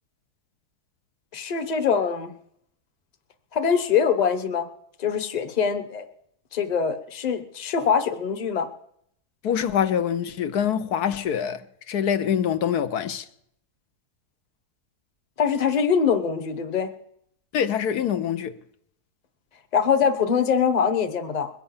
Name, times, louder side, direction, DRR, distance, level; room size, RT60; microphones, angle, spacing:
voice 1, 1.3-2.3 3.5-4.7 5.0-6.1 6.5-8.7 15.4-16.9 19.7-21.5, left 6 dB, 30° left, 1.0 m, -23 dB
voice 2, 9.4-11.6 11.9-13.2 17.5-18.6, left 8 dB, 75° left, 1.3 m, -24 dB
21.5 x 7.7 x 7.1 m
omnidirectional pair, 1.7 m